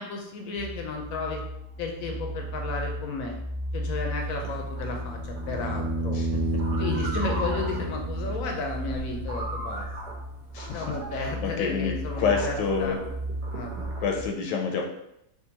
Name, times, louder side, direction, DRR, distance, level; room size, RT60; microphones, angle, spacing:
voice 1, 0.0-1.4 1.8-3.4 3.7-6.2 6.8-10.1 10.7-13.0 13.5-13.9, left 3 dB, 70° left, 2 dB, 0.9 m, -33 dB
sound 1, 0.5-14.3, right 1 dB, 40° right, 0.7 m, -35 dB
sound 2, 4.3-14.3, right 1 dB, 70° right, 1.2 m, -40 dB
sound 3, 4.7-8.7 11.1-11.2, right 1 dB, 90° right, 1.5 m, -31 dB
voice 2, 10.5-13.0 14.0-14.8, left 5 dB, 85° left, 2 dB, 1.2 m, -28 dB
3.5 x 2.6 x 2.8 m, 0.80 s
omnidirectional pair, 1.8 m